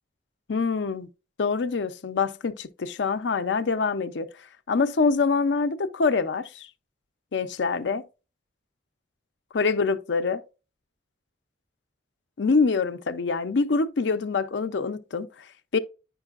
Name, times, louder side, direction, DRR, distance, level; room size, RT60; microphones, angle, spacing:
voice 1, 0.5-1.1 1.4-6.7 7.3-8.0 9.5-10.4 12.4-15.8, left 4 dB, 65° left, 0.5 m, -25 dB
9.7 x 5.3 x 2.4 m
head